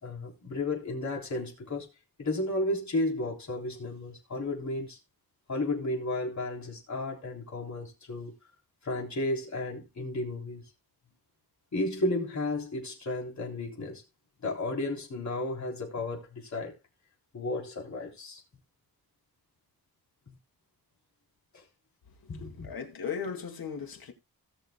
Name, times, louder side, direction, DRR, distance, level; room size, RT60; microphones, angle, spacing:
voice 1, 0.0-1.9 2.2-5.0 5.5-8.3 8.8-10.7 11.7-14.0 14.4-16.7 17.3-18.4 20.3-20.4 21.5-21.6 22.3-22.7, left 2 dB, 50° left, 3.5 m, -33 dB
voice 2, 22.3-24.1, left 6 dB, 70° left, 2.1 m, -37 dB
18.0 x 6.6 x 2.2 m
wide cardioid pair, 180°, 37 cm